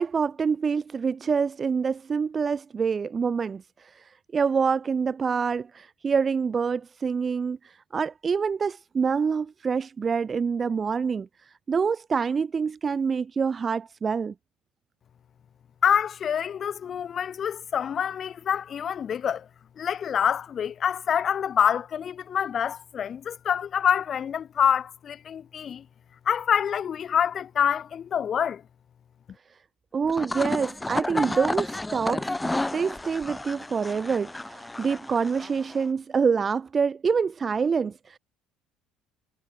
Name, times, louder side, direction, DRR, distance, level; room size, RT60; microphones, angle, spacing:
voice 1, 0.0-14.3 29.9-32.3 32.7-38.2, right 5 dB, 30° right, 2.2 m, -26 dB
voice 2, 15.8-19.5 19.8-25.9 26.3-28.6, left 8 dB, 40° left, 5.2 m, -26 dB
sound 1, 30.0-35.9, left 2 dB, 10° left, 5.9 m, -31 dB
cardioid pair, 120°, 0 cm